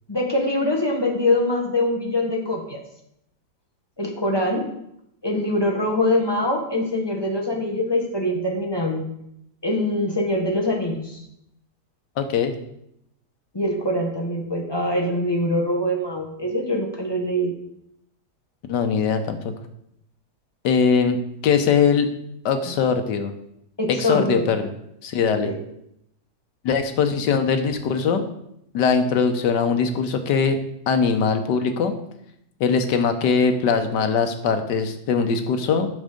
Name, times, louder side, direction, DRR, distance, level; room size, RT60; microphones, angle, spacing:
voice 1, 0.1-2.8 4.0-4.7 5.2-9.0 9.6-11.2 13.5-17.5 23.8-24.4 25.4-25.6, left 1 dB, 15° left, -1 dB, 1.2 m, -23 dB
voice 2, 12.2-12.5 18.7-19.5 20.6-21.2 21.4-22.1 22.4-23.3 24.0-24.7 25.0-25.5 26.6-28.3 28.7-30.6 30.9-32.0 32.6-35.9, left 6 dB, 90° left, 7 dB, 1.5 m, -21 dB
7.9 x 6.3 x 5.1 m, 0.78 s
omnidirectional pair, 1.8 m